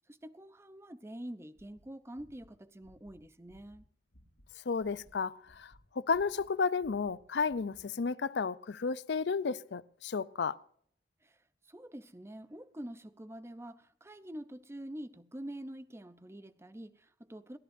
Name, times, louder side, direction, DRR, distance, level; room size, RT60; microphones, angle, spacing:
voice 1, 0.1-3.8 11.2-17.6, right 1 dB, 15° right, 0.6 m, -46 dB
sound 1, 1.5-4.5 4.7-7.2 7.5-7.9, equal, 85° left, 3.6 m, -62 dB
voice 2, 4.7-5.7 6.0-10.6, left 5 dB, 70° left, 0.5 m, -32 dB
29.5 x 11.0 x 2.6 m
head